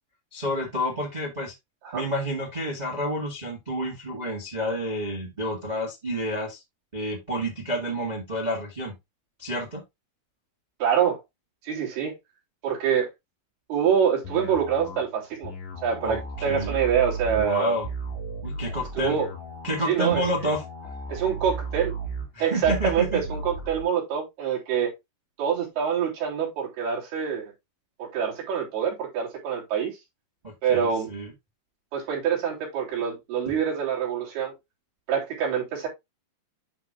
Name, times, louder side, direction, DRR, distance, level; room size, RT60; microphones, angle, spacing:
voice 1, 0.3-1.5 1.9-6.6 6.9-8.9 9.4-9.8 16.0-16.8 17.3-17.9 18.4-19.2 19.6-20.6 22.3-23.2 30.4-31.3, equal, 65° right, 0.4 m, -29 dB
voice 2, 10.8-11.2 11.6-12.1 12.6-13.1 13.7-15.5 15.8-17.8 19.0-19.3 19.9-20.2 21.1-21.9 22.4-24.9 25.4-27.5 28.0-30.0 30.6-31.1 31.9-34.5 35.1-35.9, right 7 dB, 80° right, 5.2 m, -25 dB
sound 1, 14.2-23.8, right 3 dB, 50° left, 3.5 m, -35 dB
11.0 x 4.6 x 2.5 m
omnidirectional pair, 4.4 m